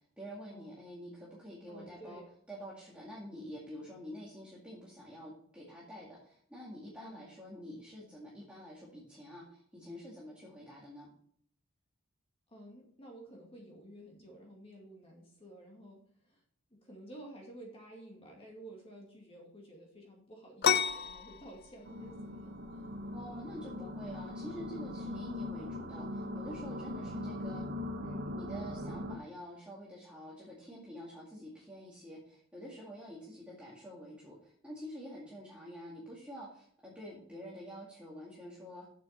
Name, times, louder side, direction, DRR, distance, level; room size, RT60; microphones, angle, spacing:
voice 1, 0.2-2.2 2.5-11.1 23.1-27.6 28.0-38.8, equal, 5° right, -6 dB, 2.1 m, -47 dB
voice 2, 1.7-2.3 7.0-7.3 12.5-16.4 16.7-22.9 27.1-27.3, right 1 dB, 30° left, -1 dB, 2.2 m, -52 dB
sound 1, 20.6-28.0, left 8 dB, 50° left, 0.4 m, -37 dB
sound 2, 21.8-29.2, left 1 dB, 55° right, 1.0 m, -40 dB
8.3 x 7.3 x 4.3 m, 0.63 s
head